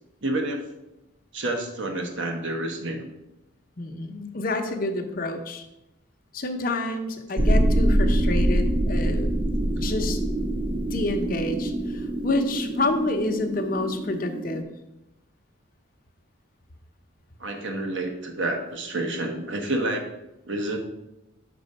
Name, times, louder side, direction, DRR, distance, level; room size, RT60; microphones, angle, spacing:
voice 1, 0.2-0.7 1.3-3.1 17.4-20.1 20.5-20.8, right 2 dB, 65° right, 3 dB, 1.1 m, -29 dB
voice 2, 3.8-5.7 6.3-9.3 9.7-10.2 10.9-14.7, left 2 dB, 45° left, 5 dB, 0.7 m, -28 dB
sound 1, 7.4-14.6, right 1 dB, 25° right, 0.4 m, -24 dB
6.0 x 4.8 x 5.4 m, 0.94 s
head